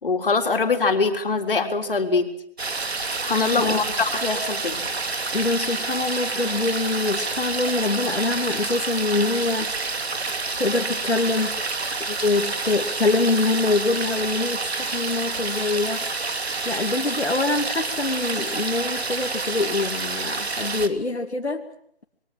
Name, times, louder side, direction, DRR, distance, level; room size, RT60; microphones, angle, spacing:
voice 1, 0.0-2.3 3.2-4.8, left 4 dB, 55° left, 4 dB, 4.0 m, -23 dB
sound 1, 2.6-20.9, right 3 dB, 75° right, 2.9 m, -28 dB
voice 2, 5.3-9.7 10.6-11.6 12.1-16.0 16.6-21.6, left 3 dB, 85° left, 2 dB, 2.8 m, -24 dB
28.0 x 22.5 x 7.8 m, 0.67 s
figure-of-eight pair, 165°, 32 cm